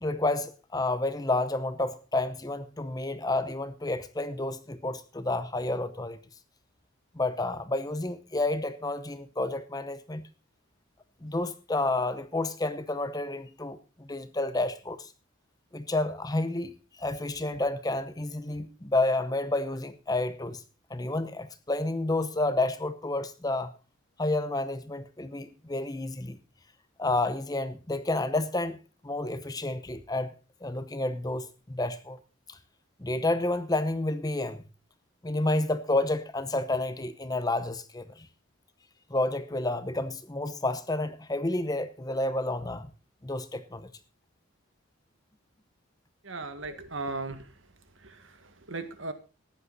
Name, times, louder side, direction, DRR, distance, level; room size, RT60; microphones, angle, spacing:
voice 1, 0.0-6.2 7.1-10.2 11.2-15.1 15.7-20.6 20.9-23.7 24.2-26.4 27.0-28.8 29.0-30.3 30.6-32.2 32.5-32.6 33.0-34.6 35.2-38.3 39.1-42.9 43.2-43.9 46.7-46.8, left 2 dB, 20° left, 0.8 m, -30 dB
voice 2, 46.2-47.5 48.0-49.1, right 3 dB, 65° right, 1.8 m, -37 dB
15.0 x 10.5 x 4.1 m
head